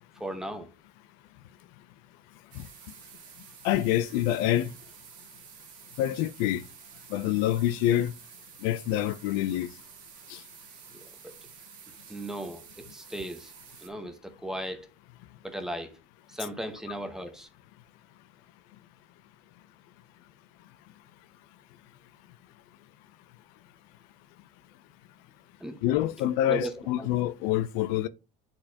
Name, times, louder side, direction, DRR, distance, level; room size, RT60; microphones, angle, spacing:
voice 1, 0.1-0.7 10.9-11.3 12.1-13.5 13.8-14.9 15.4-16.0 16.3-17.5 25.6-26.1 26.4-26.7 27.0-27.1, right 1 dB, 5° right, 1.0 m, -37 dB
sound 1, 2.5-13.9, right 8 dB, 60° right, 1.5 m, -51 dB
voice 2, 3.6-4.7 6.0-6.6 7.1-8.1 8.6-9.7 10.3-10.4 25.8-28.1, left 13 dB, 75° left, 0.5 m, -26 dB
9.8 x 4.4 x 2.8 m
cardioid pair, 130°, 15 cm